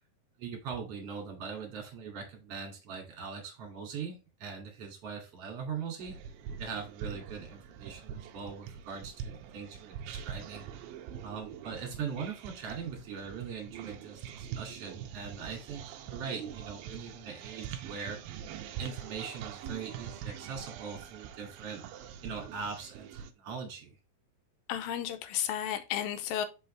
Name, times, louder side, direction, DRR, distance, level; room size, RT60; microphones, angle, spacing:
voice 1, 0.4-6.2 6.6-10.7 11.2-18.4 18.8-21.8 22.2-24.0, right 6 dB, 45° right, 2.7 m, -41 dB
sound 1, 6.0-23.3, right 9 dB, 80° right, 2.2 m, -44 dB
voice 2, 24.7-26.5, left 10 dB, 80° left, 2.3 m, -33 dB
5.5 x 5.5 x 3.2 m
omnidirectional pair, 4.5 m